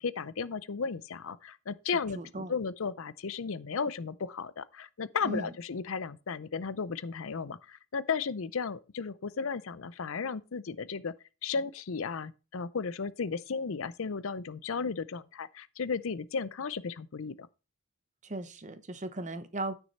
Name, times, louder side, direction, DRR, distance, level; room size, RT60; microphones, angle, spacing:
voice 1, 0.0-11.1 11.4-17.5, left 5 dB, 60° left, 0.5 m, -34 dB
voice 2, 2.1-2.5 5.2-5.5 18.2-19.7, right 2 dB, 35° right, 0.8 m, -37 dB
9.7 x 6.2 x 4.2 m
head